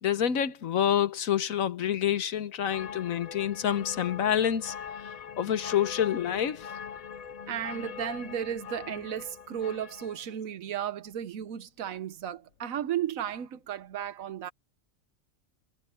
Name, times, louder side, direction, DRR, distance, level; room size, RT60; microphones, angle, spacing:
voice 1, 0.0-4.7 5.4-6.7, left 9 dB, 90° left, 1.4 m, -27 dB
sound 1, 2.7-10.3, left 7 dB, 60° left, 0.4 m, -42 dB
voice 2, 7.5-14.5, right 10 dB, 90° right, 1.3 m, -34 dB
omnidirectional pair, 1.4 m